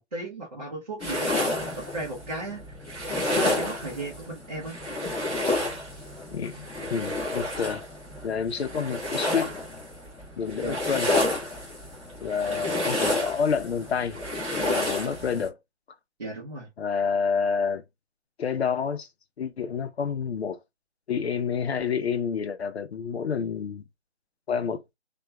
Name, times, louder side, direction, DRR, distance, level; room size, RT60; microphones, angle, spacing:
voice 1, 0.0-2.8 3.1-4.8 10.6-10.8 16.2-16.7, right 2 dB, 40° right, 0.7 m, -36 dB
sound 1, 1.0-15.5, left 1 dB, 5° right, 0.9 m, -30 dB
voice 2, 6.3-7.8 8.2-9.5 10.3-11.1 12.2-14.2 14.5-15.6 16.8-17.8 18.4-19.1 19.4-20.6 21.1-23.8 24.5-24.8, left 6 dB, 65° left, 0.5 m, -28 dB
2.8 x 2.2 x 2.2 m
hypercardioid pair, 180°, 34 cm